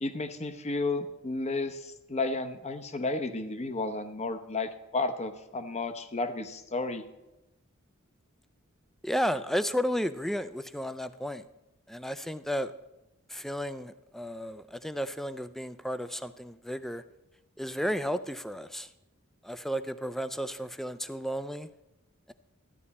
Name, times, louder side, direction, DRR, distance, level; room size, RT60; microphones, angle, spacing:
voice 1, 0.0-7.0, left 3 dB, 30° left, 9 dB, 0.8 m, -32 dB
voice 2, 9.0-11.4 11.9-12.7 13.3-17.0 17.6-18.9 19.4-21.7, equal, ahead, 12 dB, 0.4 m, -33 dB
13.5 x 9.9 x 4.2 m, 0.95 s
head